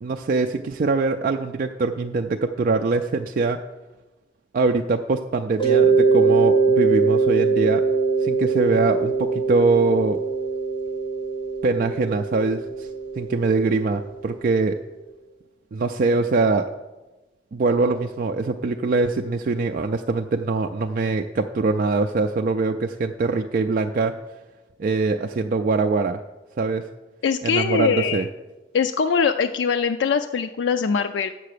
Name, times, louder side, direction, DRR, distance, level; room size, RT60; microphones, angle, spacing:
voice 1, 0.0-3.6 4.5-7.8 8.2-10.2 11.6-12.9 13.2-14.8 15.7-16.7 17.5-24.1 24.8-26.2 26.6-26.9 27.4-28.3, right 3 dB, 50° right, 4 dB, 0.4 m, -23 dB
Mallet percussion, 5.6-14.2, right 4 dB, 25° left, 1.9 m, -22 dB
voice 2, 27.2-28.3 28.7-31.3, left 6 dB, 80° left, 8 dB, 0.4 m, -22 dB
7.6 x 6.8 x 6.6 m, 1.1 s
head